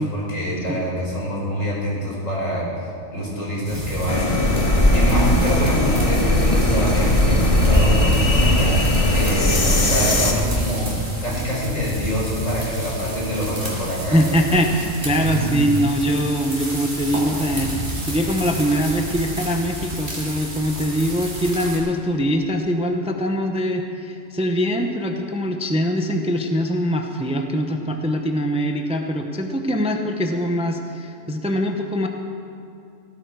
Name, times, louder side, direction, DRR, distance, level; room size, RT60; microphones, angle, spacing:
voice 1, 0.0-2.7 3.1-4.3 4.9-10.9 11.2-14.2 15.1-15.5, equal, 75° left, -5 dB, 5.0 m, -25 dB
sound 1, 3.6-21.8, equal, 55° right, 3.5 m, -27 dB
sound 2, 4.1-10.3, left 1 dB, 30° left, 1.2 m, -19 dB
voice 2, 14.1-32.1, equal, 5° right, 4 dB, 0.7 m, -22 dB
16.5 x 13.5 x 4.8 m, 2.6 s
omnidirectional pair, 1.3 m